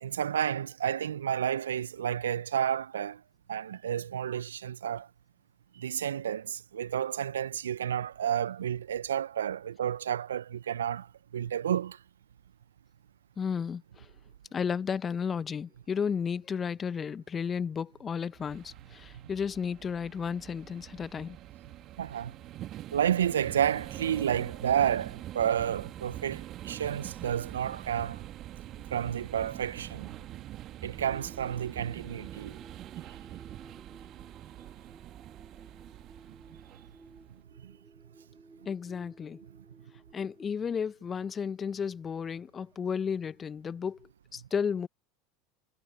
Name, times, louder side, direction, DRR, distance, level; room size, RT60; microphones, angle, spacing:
voice 1, 0.0-3.2 3.5-5.1 5.7-11.1 11.3-12.0 22.0-22.3 22.9-28.2 28.9-30.1 30.8-32.6 37.6-37.7, right 9 dB, 80° right, 0.9 m, -31 dB
voice 2, 13.4-14.1 14.5-21.4 38.6-39.4 40.1-44.9, left 6 dB, 30° left, 1.2 m, -33 dB
sound 1, 18.4-37.4, right 13 dB, 45° right, 2.1 m, -44 dB
sound 2, 31.0-40.5, right 3 dB, 15° right, 4.6 m, -55 dB
figure-of-eight pair, 80°, 0 cm